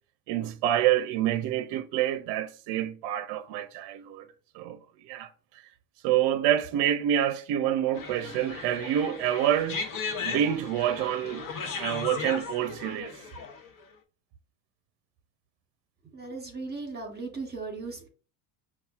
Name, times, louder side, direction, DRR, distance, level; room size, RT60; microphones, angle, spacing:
voice 1, 0.3-4.3 4.5-4.8 5.1-5.3 6.0-9.8 10.2-13.1, right 11 dB, 60° right, 0.6 m, -27 dB
sound 1, 7.9-13.8, left 5 dB, 45° left, 1.0 m, -36 dB
voice 2, 16.1-18.1, right 3 dB, 20° right, 1.1 m, -37 dB
5.4 x 2.4 x 2.3 m
supercardioid pair, 95°, 46 cm